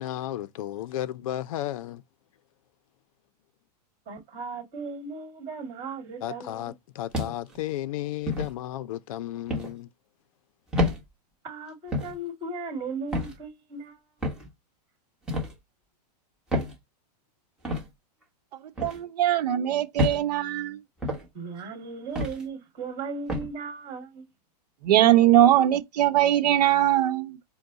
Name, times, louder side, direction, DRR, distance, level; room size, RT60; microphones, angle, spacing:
voice 1, 0.0-2.0 6.2-9.9, left 13 dB, 55° left, 0.5 m, -33 dB
voice 2, 4.1-6.7 11.4-14.0 21.3-24.2, right 4 dB, 20° right, 2.1 m, -37 dB
sound 1, 7.1-7.6 8.3-8.5 9.5-9.7 10.7-11.0 11.9-12.2 13.1-13.4 14.2-14.5 15.3-15.5 16.5-16.8 17.6-17.9 18.8-19.0 20.0-20.2 21.0-21.3 22.2-22.4 23.3-23.5, left 1 dB, 5° right, 1.4 m, -28 dB
voice 3, 18.8-20.8 24.8-27.4, right 12 dB, 70° right, 0.9 m, -21 dB
4.6 x 2.2 x 3.9 m
supercardioid pair, 170°, 21 cm